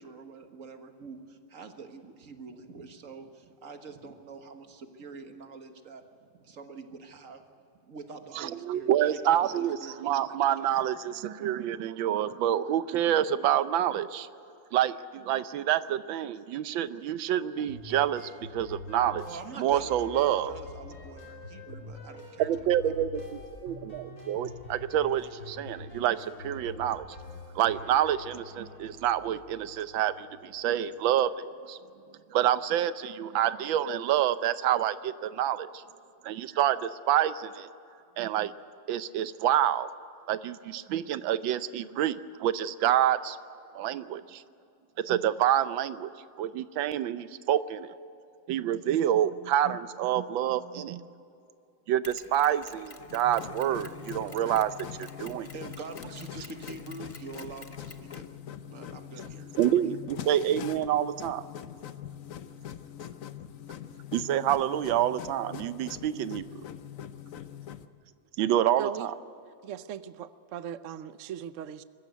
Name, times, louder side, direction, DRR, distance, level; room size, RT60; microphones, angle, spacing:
voice 1, 0.0-7.5 7.9-10.7 19.3-23.1 55.5-58.3 58.7-60.0, right 4 dB, 45° right, 6 dB, 1.8 m, -45 dB
voice 2, 8.3-14.3 14.7-19.2 19.6-20.5 22.5-27.1 27.5-31.8 32.3-35.8 36.2-37.7 38.2-38.5 38.9-39.9 40.3-43.4 43.7-44.4 45.0-46.1 46.4-47.9 48.5-51.1 51.9-54.7 55.0-55.5 59.6-61.4 64.1-66.6 68.4-69.1, right 11 dB, 90° right, 13 dB, 1.5 m, -27 dB
sound 1, 17.6-30.9, left 2 dB, 75° left, 5.2 m, -46 dB
Mechanisms, 52.0-58.3, left 4 dB, 35° left, 0.5 m, -51 dB
sound 2, 53.0-67.9, left 10 dB, 60° left, 1.0 m, -43 dB
voice 3, 68.8-69.1 69.6-71.8, right 9 dB, 70° right, 13 dB, 0.7 m, -39 dB
24.0 x 14.5 x 9.3 m, 2.6 s
omnidirectional pair, 2.1 m